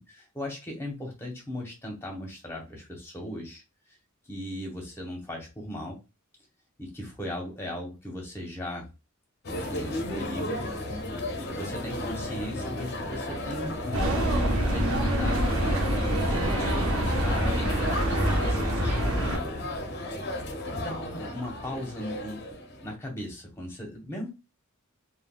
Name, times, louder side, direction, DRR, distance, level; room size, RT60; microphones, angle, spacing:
voice 1, 0.1-3.6 3.9-4.0 4.2-6.0 6.8-8.9 9.5-10.7 11.4-14.1 14.4-15.4 16.2-19.6 20.7-22.4 22.8-24.3, left 1 dB, 10° left, 0 dB, 0.8 m, -37 dB
sound 1, 9.4-22.9, left 1 dB, 50° left, 0.5 m, -33 dB
sound 2, 13.9-19.4, right 1 dB, 75° right, 0.7 m, -26 dB
3.4 x 2.2 x 2.2 m, 0.27 s
head